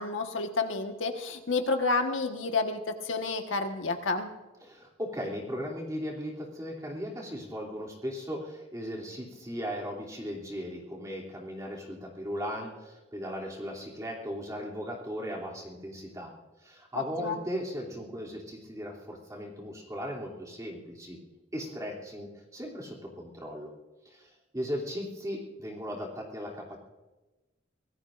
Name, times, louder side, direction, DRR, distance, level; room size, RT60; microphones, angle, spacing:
voice 1, 0.0-4.3 17.2-17.4, left 3 dB, 85° left, 4 dB, 1.5 m, -30 dB
voice 2, 4.6-16.3 16.6-21.2 21.5-23.7 24.0-26.8, equal, 15° right, -2 dB, 3.0 m, -37 dB
25.5 x 17.0 x 2.6 m, 1.1 s
head